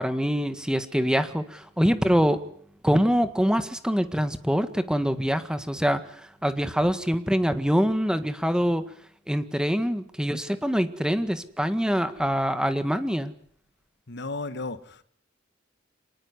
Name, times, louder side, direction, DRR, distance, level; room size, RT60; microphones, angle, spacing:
voice 1, 0.0-2.4 2.8-8.8 9.3-13.3, equal, 5° right, 1.7 m, -24 dB
voice 2, 14.1-15.0, left 3 dB, 60° left, 1.6 m, -34 dB
26.5 x 20.0 x 9.8 m
head